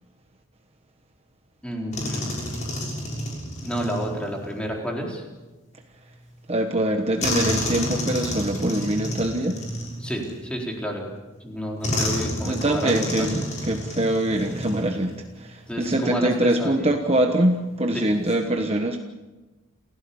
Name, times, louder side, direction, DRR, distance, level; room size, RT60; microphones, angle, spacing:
voice 1, 1.6-2.4 3.6-5.2 10.0-11.1 11.4-13.3 15.7-16.9 17.9-18.1, equal, 5° left, -1 dB, 4.1 m, -30 dB
sound 1, 1.9-4.6 7.2-10.7 11.8-15.2 15.5-15.7 18.0-18.3, left 1 dB, 35° left, 6.6 m, -30 dB
voice 2, 6.5-9.6 12.4-19.0, right 1 dB, 30° right, 4 dB, 1.2 m, -23 dB
29.0 x 15.5 x 7.1 m, 1.2 s
head